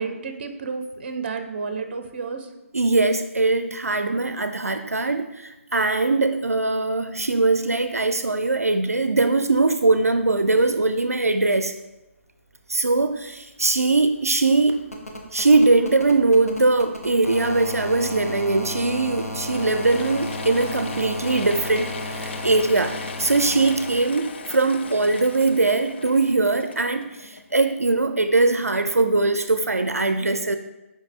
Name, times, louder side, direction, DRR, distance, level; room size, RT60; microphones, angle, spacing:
voice 1, 0.0-2.5, right 4 dB, 45° right, 7 dB, 0.6 m, -31 dB
voice 2, 2.7-11.7 12.7-14.8 15.3-30.6, right 3 dB, 85° right, 8 dB, 0.4 m, -21 dB
sound 1, 12.8-12.9 13.1-24.0 25.4-25.5, left 1 dB, 80° left, 1.0 m, -35 dB
Mechanisms / Drill, 19.2-27.8, left 5 dB, 45° left, 0.4 m, -38 dB
6.4 x 5.0 x 3.1 m, 1.0 s
figure-of-eight pair, 140°, 8 cm